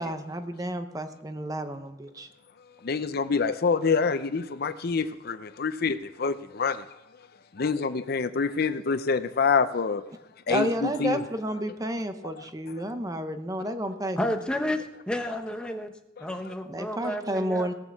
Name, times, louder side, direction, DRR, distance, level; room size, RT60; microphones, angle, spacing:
voice 1, 0.0-2.3 10.5-14.2 16.7-17.7, right 1 dB, 20° right, 0.8 m, -31 dB
voice 2, 2.8-6.8 7.5-10.0 10.5-11.2 16.2-16.3, left 5 dB, 55° left, 0.6 m, -26 dB
voice 3, 14.2-15.9 16.2-17.7, left 1 dB, 5° left, 1.2 m, -31 dB
18.0 x 6.4 x 7.3 m
head